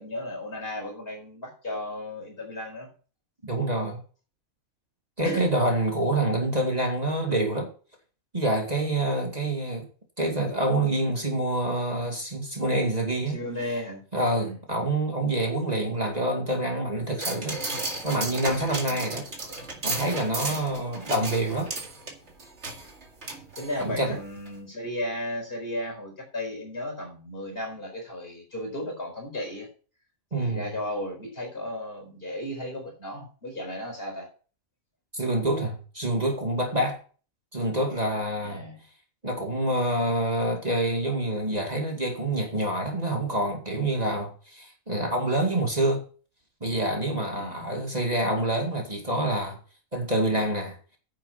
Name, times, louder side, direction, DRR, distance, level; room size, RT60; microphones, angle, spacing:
voice 1, 0.0-2.9 5.2-5.5 13.3-14.0 14.4-14.6 20.4-20.7 23.6-29.7 30.3-34.3 38.4-38.8 47.3-47.7, left 1 dB, 45° left, 4.7 m, -35 dB
voice 2, 3.4-4.0 5.2-7.7 8.3-9.9 10.2-13.4 14.1-19.3 19.8-21.7 23.8-24.2 30.3-30.7 35.1-37.0 37.5-38.6 39.2-46.0 46.6-49.6 49.9-50.8, right 1 dB, 30° right, 2.4 m, -27 dB
sound 1, 17.2-24.1 24.5-24.6, right 2 dB, 55° right, 2.4 m, -34 dB
10.0 x 7.4 x 5.7 m
omnidirectional pair, 1.4 m